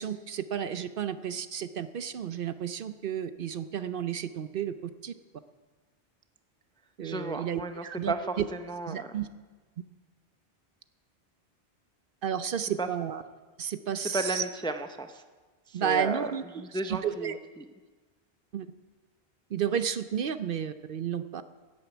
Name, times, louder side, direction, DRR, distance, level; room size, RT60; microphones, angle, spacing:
voice 1, 0.0-5.1 7.0-8.4 8.9-9.3 12.2-13.2 13.6-14.4 15.7-16.4 16.7-17.4 18.5-18.7 19.5-21.4, right 8 dB, 60° right, 12 dB, 0.8 m, -32 dB
voice 2, 7.0-9.1 12.8-12.9 14.1-15.2 15.7-17.3, right 2 dB, 5° left, 7 dB, 0.5 m, -34 dB
11.0 x 10.0 x 8.2 m, 1.3 s
omnidirectional pair, 1.1 m